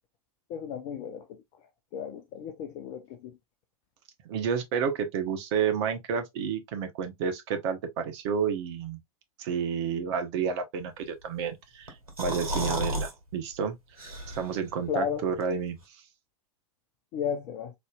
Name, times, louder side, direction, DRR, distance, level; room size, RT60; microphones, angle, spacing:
voice 1, 0.5-1.2 1.9-3.0 14.9-15.2 17.1-17.7, left 7 dB, 40° left, 0.7 m, -33 dB
voice 2, 4.2-9.0 9.4-11.9 12.2-13.7 14.3-15.8, right 7 dB, 50° right, 1.0 m, -30 dB
sound 1, 11.9-13.1 13.5-13.6 14.0-14.6, equal, 75° right, 1.6 m, -32 dB
4.1 x 3.2 x 2.4 m
figure-of-eight pair, 95°, 19 cm